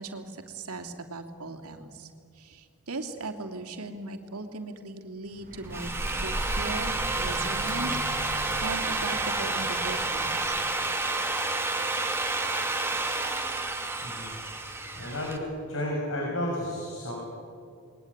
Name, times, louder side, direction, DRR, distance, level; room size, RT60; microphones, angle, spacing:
voice 1, 0.0-2.1 2.4-5.9 6.2-10.6, right 2 dB, 75° right, 5 dB, 2.8 m, -38 dB
Bird, 5.2-11.0, right 1 dB, 40° right, 1.8 m, -38 dB
Drill, 5.5-15.4, right 2 dB, 10° right, 2.6 m, -30 dB
voice 2, 14.0-14.3 14.9-15.4 15.7-17.2, left 1 dB, 65° left, -1 dB, 6.4 m, -32 dB
28.5 x 21.5 x 9.6 m, 2.4 s
head